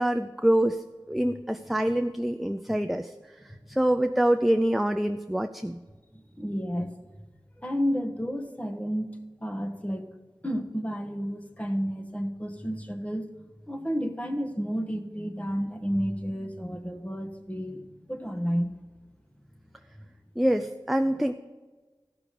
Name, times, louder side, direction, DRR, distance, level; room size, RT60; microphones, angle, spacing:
voice 1, 0.0-3.1 3.4-5.8 20.4-21.3, right 1 dB, ahead, 8 dB, 0.4 m, -25 dB
voice 2, 6.1-6.9 7.6-10.0 10.4-13.3 13.7-18.7, equal, 15° left, 3 dB, 1.2 m, -31 dB
14.0 x 6.0 x 5.1 m, 1.3 s
wide cardioid pair, 50°, 9 cm